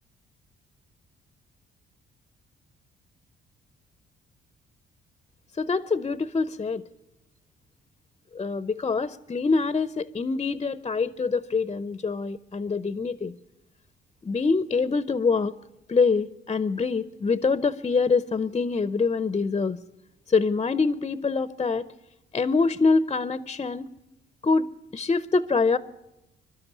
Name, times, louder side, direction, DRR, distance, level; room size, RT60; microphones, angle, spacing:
voice 1, 5.6-6.8 8.3-13.3 14.2-15.5 15.9-19.8 20.3-21.9 22.3-23.9 24.4-25.8, left 4 dB, 25° left, 0.6 m, -25 dB
22.5 x 12.5 x 9.4 m
cardioid pair, 90°, 20 cm